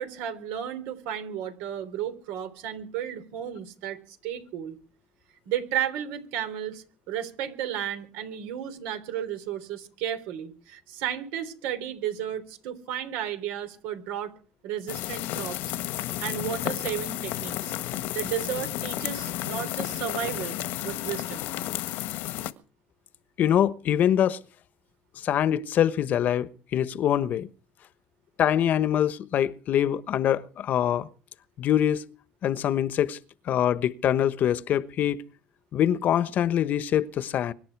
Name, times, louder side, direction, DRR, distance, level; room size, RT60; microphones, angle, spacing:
voice 1, 0.0-4.8 5.5-14.3 14.6-15.7 16.2-17.7 18.1-21.5, right 10 dB, 85° right, 3.7 m, -33 dB
sound 1, 14.9-22.5, left 15 dB, 80° left, 1.5 m, -32 dB
voice 2, 23.4-24.4 25.2-27.5 28.4-31.1 31.6-32.0 32.4-33.2 33.5-35.2 35.7-37.5, left 10 dB, 55° left, 1.2 m, -24 dB
24.5 x 11.0 x 4.7 m
supercardioid pair, 95°, 3 cm